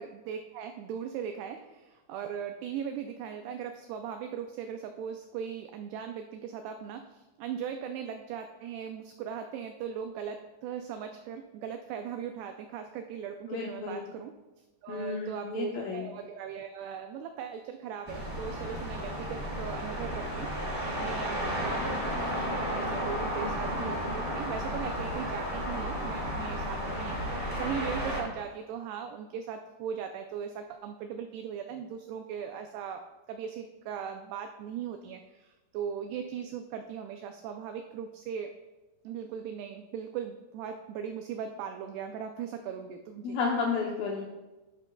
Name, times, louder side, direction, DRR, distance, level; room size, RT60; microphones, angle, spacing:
voice 1, 0.0-14.3 14.8-20.5 20.9-38.5 39.0-43.4, right 8 dB, 85° right, 6 dB, 2.3 m, -39 dB
voice 2, 13.5-14.0 14.9-16.1 43.2-44.2, left 5 dB, 80° left, -1 dB, 2.1 m, -32 dB
sound 1, 18.1-28.2, equal, 15° right, 0.9 m, -33 dB
18.0 x 6.4 x 2.2 m, 1.1 s
omnidirectional pair, 5.1 m